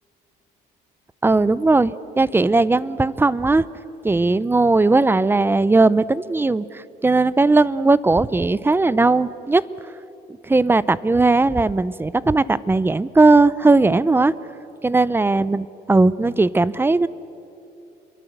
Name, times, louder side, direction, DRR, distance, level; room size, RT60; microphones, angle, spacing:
voice 1, 1.2-3.6 4.0-9.6 10.4-14.3 14.8-17.1, right 3 dB, 15° right, 18 dB, 0.6 m, -18 dB
28.0 x 23.0 x 8.0 m, 2.7 s
cardioid pair, 115°, 17 cm